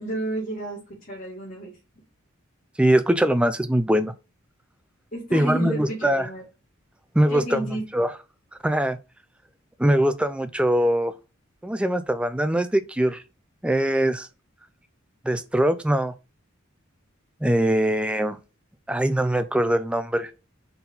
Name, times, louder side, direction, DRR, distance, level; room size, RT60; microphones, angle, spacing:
voice 1, 0.0-1.7 5.1-6.4 7.3-7.8, right 1 dB, 40° left, 1.8 m, -31 dB
voice 2, 2.8-4.1 5.3-6.3 7.1-7.6 7.9-8.1 8.6-9.0 9.8-11.1 11.6-13.2 13.6-14.3 15.2-16.1 17.4-18.4 18.9-20.3, right 1 dB, 5° right, 0.4 m, -22 dB
4.4 x 4.1 x 5.4 m
head